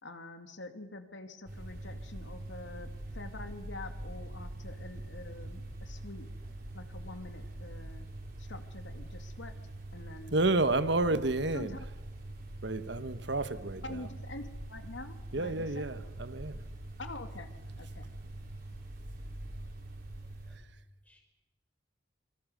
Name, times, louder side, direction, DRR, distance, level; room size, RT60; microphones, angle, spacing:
voice 1, 0.0-6.3 6.7-8.1 8.4-9.5 9.9-10.3 11.5-11.9 13.8-16.0 17.0-18.1, left 2 dB, 75° left, 7 dB, 2.3 m, -46 dB
sound 1, 1.5-20.6, right 1 dB, 50° right, 5.0 m, -44 dB
voice 2, 10.3-11.7 12.6-13.8 15.3-16.6, right 2 dB, 65° right, 12 dB, 1.3 m, -30 dB
voice 3, 19.3-20.7 21.0-21.2, equal, 10° left, 3 dB, 5.5 m, -67 dB
26.0 x 25.0 x 6.6 m, 1.0 s
head